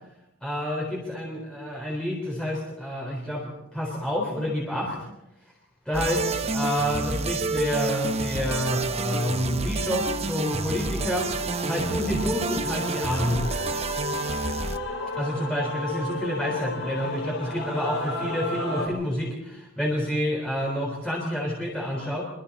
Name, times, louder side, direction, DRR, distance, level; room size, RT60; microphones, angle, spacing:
voice 1, 0.4-5.0 5.9-11.3 11.7-13.4 15.2-22.2, equal, 5° left, -3 dB, 3.8 m, -28 dB
sound 1, 5.9-14.8, right 3 dB, 30° right, 0.9 m, -29 dB
Male singing / Female singing / Musical instrument, 9.4-18.9, left 2 dB, 75° left, 4.5 m, -34 dB
26.5 x 23.5 x 4.2 m, 0.90 s
head